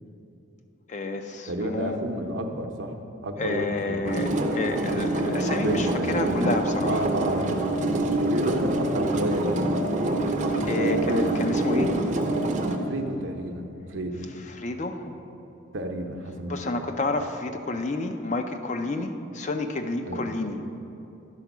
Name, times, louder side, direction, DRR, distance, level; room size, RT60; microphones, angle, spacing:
voice 1, 0.9-2.0 3.4-7.1 10.3-10.4 10.7-11.9 14.5-15.1 16.5-20.6, left 2 dB, 35° left, 7 dB, 0.4 m, -30 dB
voice 2, 1.5-4.1 5.6-6.5 6.9-7.4 7.9-9.8 10.7-11.9 12.8-14.2 15.0-15.1 15.7-16.7 20.0-20.3, right 1 dB, 70° right, 4 dB, 0.7 m, -31 dB
sound 1, 4.0-12.8, right 1 dB, 35° right, 0.6 m, -26 dB
10.5 x 4.5 x 6.0 m, 2.9 s
head